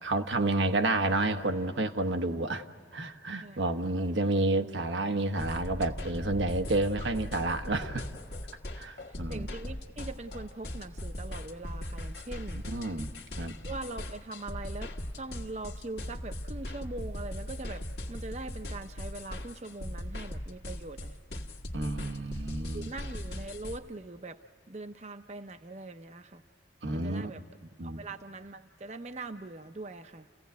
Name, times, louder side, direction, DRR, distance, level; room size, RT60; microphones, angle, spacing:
voice 1, 0.0-2.6 2.9-8.1 8.8-9.5 12.7-13.1 13.4-13.5 21.7-22.9 26.8-27.4 27.8-28.0, right 2 dB, 85° right, 6 dB, 1.1 m, -30 dB
sound 1, 5.4-23.8, left 1 dB, 60° left, 1.5 m, -39 dB
voice 2, 9.3-12.6 13.7-21.2 22.3-22.5 22.7-24.4 24.7-26.4 26.9-27.4 27.8-30.3, right 2 dB, 40° right, 8 dB, 0.6 m, -42 dB
29.5 x 16.5 x 9.3 m, 2.4 s
head